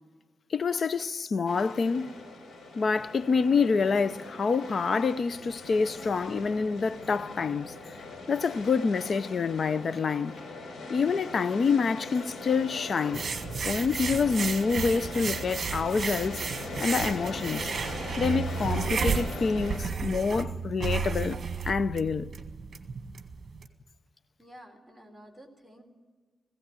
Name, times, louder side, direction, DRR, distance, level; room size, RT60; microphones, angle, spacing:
voice 1, 0.5-2.1 2.8-10.4 10.9-13.3 13.6-16.4 16.8-17.7 18.2-21.4 21.6-22.3, left 5 dB, 50° left, 0.6 m, -27 dB
sound 1, 1.5-19.8, left 2 dB, 75° left, 5.4 m, -41 dB
sound 2, 13.1-23.7, right 5 dB, 50° right, 1.7 m, -33 dB
voice 2, 24.4-25.8, equal, 5° left, 3.2 m, -51 dB
18.5 x 16.5 x 8.9 m
wide cardioid pair, 125°, 0 cm